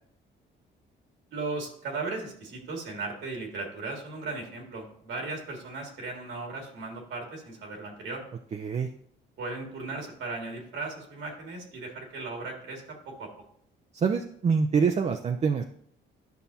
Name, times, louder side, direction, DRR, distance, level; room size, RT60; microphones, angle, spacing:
voice 1, 1.3-8.2 9.4-13.3, right 3 dB, 75° right, 1 dB, 1.9 m, -37 dB
voice 2, 8.5-8.9 13.9-15.6, right 5 dB, 35° right, 5 dB, 0.5 m, -25 dB
10.5 x 5.6 x 2.7 m, 0.65 s
cardioid pair, 90°, 20 cm